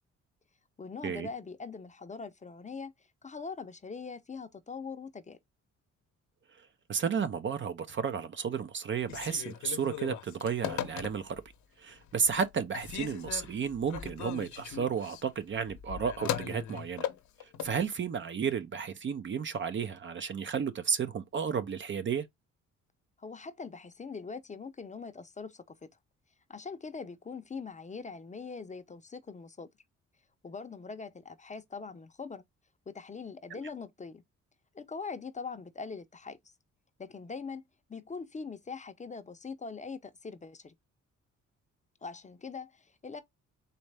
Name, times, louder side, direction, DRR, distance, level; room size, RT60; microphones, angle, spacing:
voice 1, 0.8-5.4 23.2-25.8 26.5-29.7 30.4-32.4 32.9-34.2 34.7-36.4 37.0-37.6 37.9-40.7 42.0-43.2, left 5 dB, 25° left, 0.6 m, -42 dB
voice 2, 6.9-11.4 11.8-17.1 17.4-22.3, right 6 dB, 40° right, 0.6 m, -32 dB
Telephone, 9.0-11.5 12.0-12.5 12.7-17.8, left 10 dB, 75° left, 0.8 m, -38 dB
4.2 x 3.2 x 3.3 m
cardioid pair, 90°, 30 cm